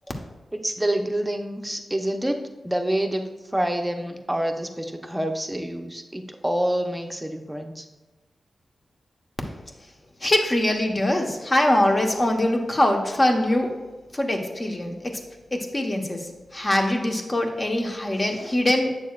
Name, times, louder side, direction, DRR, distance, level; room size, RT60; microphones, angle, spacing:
voice 1, 0.5-2.4 2.6-3.2 3.5-7.9, right 1 dB, 10° right, 4 dB, 0.8 m, -27 dB
voice 2, 10.2-13.8 14.1-15.2 15.5-18.9, left 1 dB, 30° left, 2 dB, 1.1 m, -23 dB
8.4 x 6.6 x 2.4 m, 1.2 s
cardioid pair, 75°, 0 cm